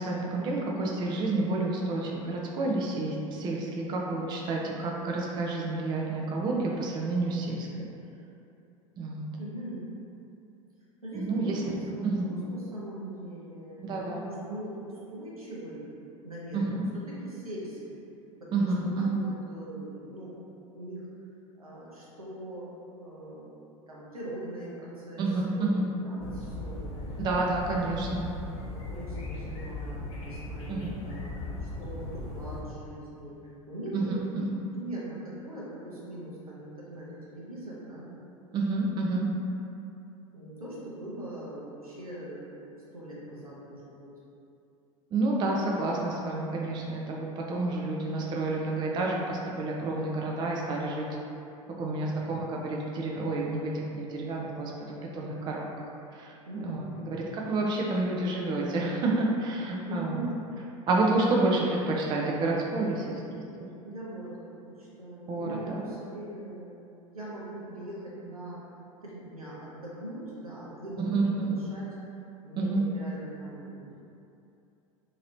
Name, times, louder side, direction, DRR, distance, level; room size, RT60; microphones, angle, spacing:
voice 1, 0.0-7.9 9.0-9.3 11.1-11.8 12.0-12.3 13.8-14.3 16.5-16.9 18.5-19.2 25.2-25.9 27.2-28.3 30.7-31.0 33.9-34.6 38.5-39.3 45.1-51.1 51.8-55.7 56.1-60.2 60.9-63.4 65.3-65.9 71.0-71.6 72.6-72.8 73.1-73.2, right 2 dB, 25° right, -2 dB, 0.4 m, -29 dB
voice 2, 9.4-9.9 11.0-15.8 16.2-16.8 17.1-18.0 18.4-18.7 19.0-20.4 20.7-21.1 21.6-22.7 23.0-23.5 23.9-27.3 28.7-33.4 33.7-34.5 34.8-38.1 40.3-42.7 42.9-44.1 50.7-51.2 51.6-52.2 56.5-57.0 59.9-60.4 63.8-68.6 69.0-71.9 72.4-74.0, right 1 dB, 85° right, -7 dB, 0.7 m, -41 dB
sound 1, 26.2-32.6, left 2 dB, 30° left, 0.9 m, -38 dB
2.9 x 2.8 x 2.6 m, 2.7 s
figure-of-eight pair, 80°, 18 cm